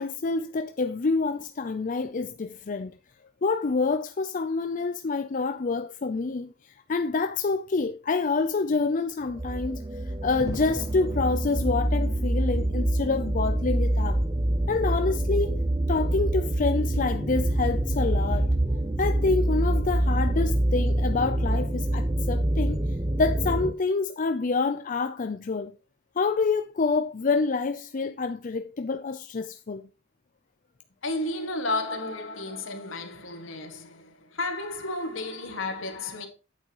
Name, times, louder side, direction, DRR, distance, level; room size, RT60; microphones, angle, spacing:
voice 1, 0.0-2.9 3.4-6.5 6.9-9.8 10.2-14.2 14.7-15.6 15.9-18.5 19.0-22.8 23.2-25.7 26.2-29.8, left 4 dB, 40° left, 0.5 m, -27 dB
sound 1, 9.3-23.7, right 1 dB, 20° right, 0.7 m, -26 dB
voice 2, 31.0-36.3, left 2 dB, 75° left, 1.9 m, -32 dB
9.2 x 8.4 x 3.0 m
head